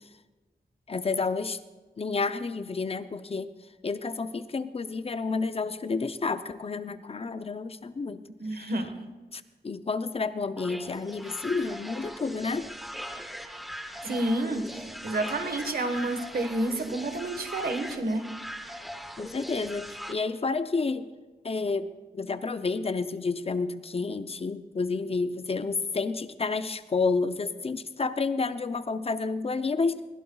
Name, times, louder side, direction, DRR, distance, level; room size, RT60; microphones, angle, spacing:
voice 1, 0.9-1.6 2.0-3.5 3.8-8.2 8.5-8.7 9.3-12.7 19.2-21.1 21.4-30.0, left 4 dB, 35° left, 12 dB, 0.5 m, -30 dB
voice 2, 8.4-8.9 14.0-18.3, right 1 dB, 60° right, 7 dB, 1.3 m, -30 dB
sound 1, 10.6-20.1, equal, ahead, 0.9 m, -40 dB
21.0 x 16.5 x 2.3 m, 1.2 s
wide cardioid pair, 125°, 17 cm